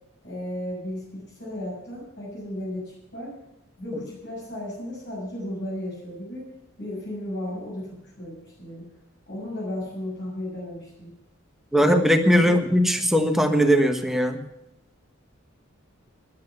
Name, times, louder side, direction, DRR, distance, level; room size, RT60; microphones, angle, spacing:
voice 1, 0.2-3.4 3.8-6.5 6.8-8.9 9.3-11.1 12.4-12.6, left 1 dB, 60° left, -5 dB, 6.8 m, -34 dB
voice 2, 11.7-14.4, equal, ahead, 5 dB, 1.3 m, -19 dB
13.5 x 10.5 x 7.1 m, 0.89 s
head